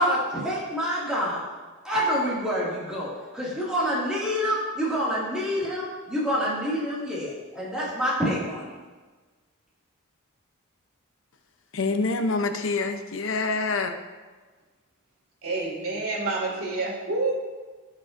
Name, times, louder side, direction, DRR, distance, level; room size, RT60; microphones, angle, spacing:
voice 1, 0.0-1.4 1.8-8.7, equal, 5° right, -8 dB, 2.0 m, -27 dB
voice 2, 11.7-13.9, left 3 dB, 65° left, 7 dB, 0.6 m, -26 dB
voice 3, 15.4-17.3, right 3 dB, 80° right, -2 dB, 2.1 m, -28 dB
15.5 x 5.2 x 2.5 m, 1.3 s
head